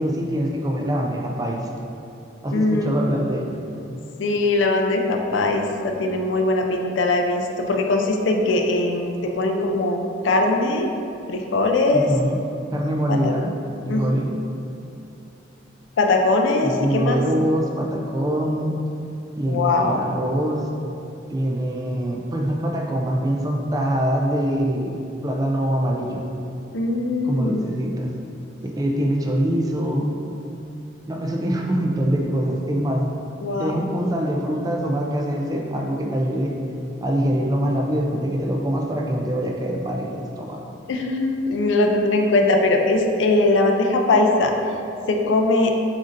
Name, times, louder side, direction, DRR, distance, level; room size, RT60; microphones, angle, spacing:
voice 1, 0.0-1.7 2.4-3.6 11.9-12.4 12.7-13.5 13.9-14.3 16.6-18.8 19.4-20.7 21.3-25.0 25.2-26.2 27.2-28.1 28.8-30.1 31.1-33.1 33.6-36.5 37.0-40.6, equal, 20° right, 0 dB, 0.3 m, -24 dB
voice 2, 2.5-2.9 4.2-10.9 11.3-12.1 13.1-13.3 13.9-14.0 16.0-17.2 19.5-20.0 26.7-27.6 33.4-33.7 40.9-44.5 45.1-45.7, left 2 dB, 85° left, 3 dB, 0.4 m, -20 dB
7.1 x 2.6 x 2.5 m, 2.6 s
head